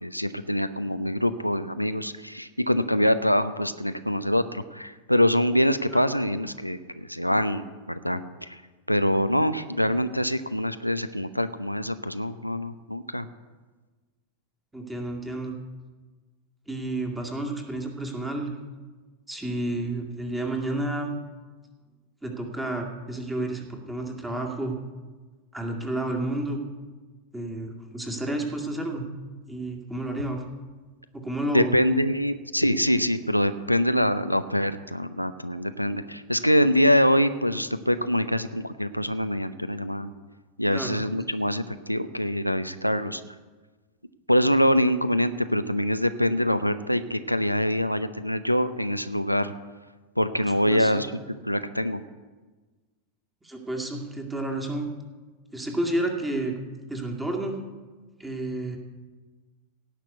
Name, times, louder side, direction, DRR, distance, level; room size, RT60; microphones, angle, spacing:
voice 1, 0.0-8.6 8.9-13.3 31.5-40.1 40.6-43.2 44.3-49.5 50.2-51.1 51.5-52.0, equal, 90° left, 11 dB, 0.6 m, -24 dB
voice 2, 14.7-15.6 16.7-18.5 19.3-21.1 22.2-24.8 25.5-26.6 27.3-29.1 29.5-30.5 31.1-31.7 40.7-41.0 50.7-50.9 53.4-54.9 55.5-56.6 56.9-57.6 58.2-58.8, right 1 dB, 5° right, 2 dB, 2.2 m, -30 dB
17.0 x 6.0 x 8.1 m, 1.3 s
figure-of-eight pair, 90°, 0 cm